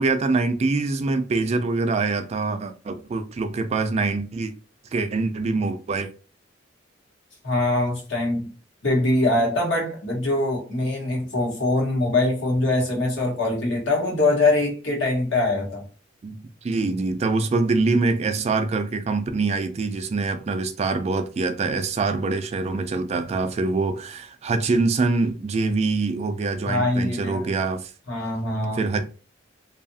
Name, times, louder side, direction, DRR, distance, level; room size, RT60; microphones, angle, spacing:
voice 1, 0.0-4.5 4.9-6.1 16.2-16.4 16.6-27.9 28.7-29.0, right 3 dB, 35° right, 0.3 m, -24 dB
voice 2, 7.4-8.5 8.8-15.8 26.6-27.5 28.1-28.8, left 2 dB, 70° left, 1.1 m, -23 dB
2.7 x 2.4 x 2.6 m
head